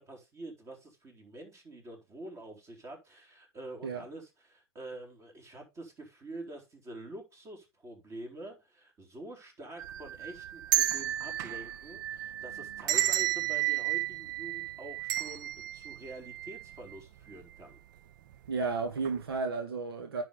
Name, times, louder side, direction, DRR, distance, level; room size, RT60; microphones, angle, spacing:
voice 1, 0.0-17.8, right 1 dB, 25° right, 3.9 m, -47 dB
sound 1, 9.8-17.0 17.3-17.4 18.3-18.6 19.0-19.2, right 14 dB, 50° right, 0.7 m, -32 dB
voice 2, 18.5-20.2, right 4 dB, 75° right, 1.9 m, -33 dB
10.0 x 6.0 x 3.7 m
hypercardioid pair, 105°, 13 cm